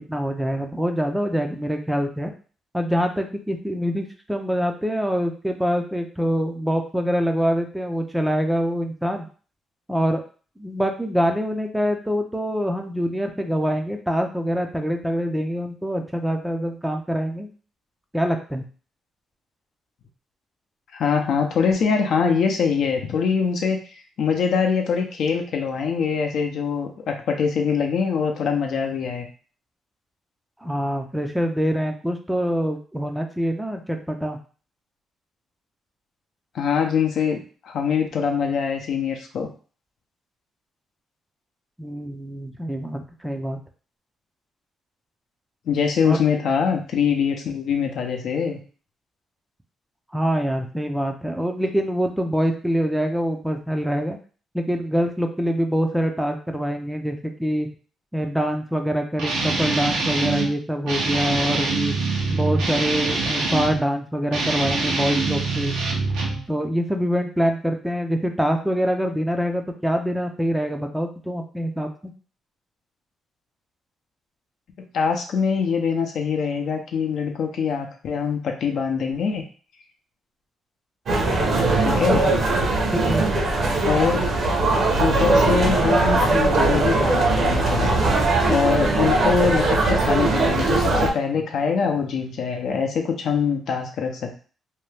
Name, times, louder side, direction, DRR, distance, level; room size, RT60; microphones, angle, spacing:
voice 1, 0.0-2.3 2.7-9.3 9.9-10.2 10.6-17.5 18.1-18.6 30.6-34.4 41.8-43.6 46.0-46.2 50.1-54.2 54.5-57.7 58.1-61.9 62.3-65.7 66.5-72.1 81.4-81.7 82.2-82.3 82.9-83.3, equal, 5° right, 4 dB, 0.4 m, -25 dB
voice 2, 20.9-23.8 24.2-29.2 36.5-37.4 37.6-39.5 45.7-48.6 74.9-79.4 81.8-82.3 83.9-84.2 85.0-88.0 88.5-94.4, left 6 dB, 70° left, 3 dB, 0.6 m, -23 dB
Guitar, 59.2-60.5 60.9-63.8 64.3-66.4, right 3 dB, 90° right, 0.8 m, -24 dB
sound 1, 81.1-91.1, right 2 dB, 55° right, 0.9 m, -20 dB
2.7 x 2.2 x 3.3 m, 0.40 s
cardioid pair, 90°, 0 cm